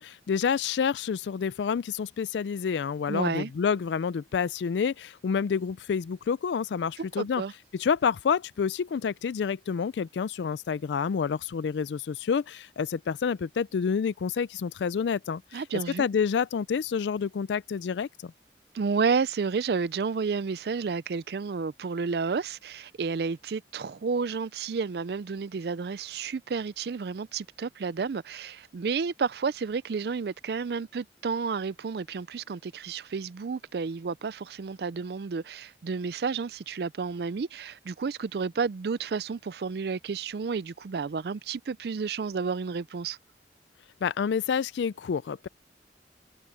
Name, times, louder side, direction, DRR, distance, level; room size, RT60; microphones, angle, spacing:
voice 1, 0.0-7.4 7.7-15.6 16.0-18.3 44.0-45.5, left 6 dB, 80° left, 0.4 m, -28 dB
voice 2, 3.1-3.5 7.2-7.5 15.5-16.1 18.7-43.2, right 5 dB, 65° right, 0.4 m, -31 dB
head